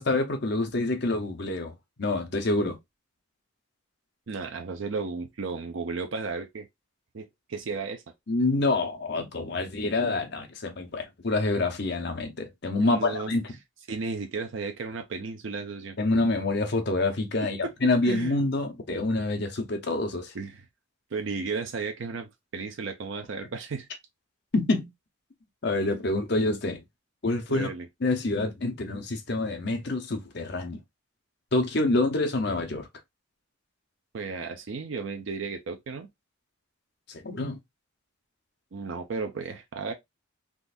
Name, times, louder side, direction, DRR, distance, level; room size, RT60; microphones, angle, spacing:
voice 1, 0.0-1.7 2.0-2.8 8.3-13.4 16.0-20.3 24.5-24.9 25.6-26.8 27.2-27.7 28.0-30.8 31.5-32.9 37.1-37.6, left 2 dB, 55° left, 0.8 m, -27 dB
voice 2, 4.3-6.7 7.1-8.0 12.8-13.3 13.9-16.0 17.6-18.4 20.3-20.6 21.1-23.9 25.8-25.9 27.5-27.9 34.1-36.1 38.7-39.9, right 4 dB, 65° right, 0.5 m, -34 dB
3.7 x 2.5 x 2.5 m
head